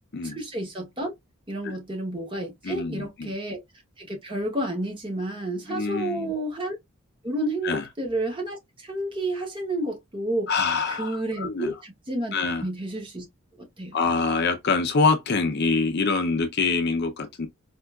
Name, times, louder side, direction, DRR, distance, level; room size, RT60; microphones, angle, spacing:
voice 1, 0.2-1.1 1.5-3.6 4.0-6.8 7.2-10.5 10.9-12.3 12.6-13.3 13.6-14.0, right 1 dB, 25° right, 0.8 m, -30 dB
voice 2, 2.6-3.3 5.7-6.3 7.6-7.9 10.5-11.7 12.3-12.6 13.9-17.5, left 4 dB, 50° left, 0.5 m, -25 dB
4.3 x 2.4 x 2.2 m
head